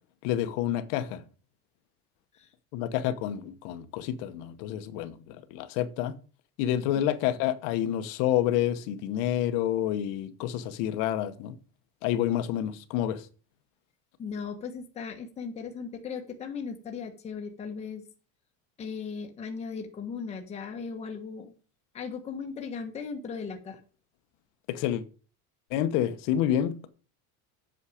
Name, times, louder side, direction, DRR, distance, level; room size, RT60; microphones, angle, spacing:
voice 1, 0.2-1.2 2.7-6.2 6.6-11.5 12.0-13.3 24.7-25.0 25.7-26.9, left 11 dB, 60° left, 1.1 m, -28 dB
voice 2, 14.2-18.0 18.8-21.5 21.9-23.8, left 5 dB, 15° left, 1.3 m, -37 dB
8.5 x 6.5 x 4.9 m
cardioid pair, 175°, 37 cm